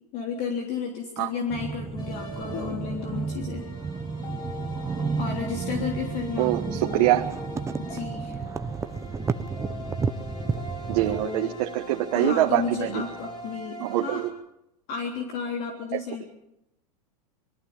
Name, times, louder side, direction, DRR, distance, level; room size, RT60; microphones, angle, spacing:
voice 1, 0.1-3.6 5.2-7.1 7.8-8.4 11.0-11.6 12.1-14.2 14.9-16.2, left 6 dB, 45° left, 1 dB, 3.4 m, -32 dB
sound 1, 1.5-11.3, right 5 dB, 15° right, 0.8 m, -32 dB
sound 2, 2.0-14.3, left 1 dB, 20° left, 5.0 m, -41 dB
voice 2, 6.4-7.3 10.9-13.0 13.8-14.3, right 15 dB, 60° right, 4 dB, 1.4 m, -24 dB
22.5 x 14.5 x 8.9 m, 0.85 s
supercardioid pair, 130°, 21 cm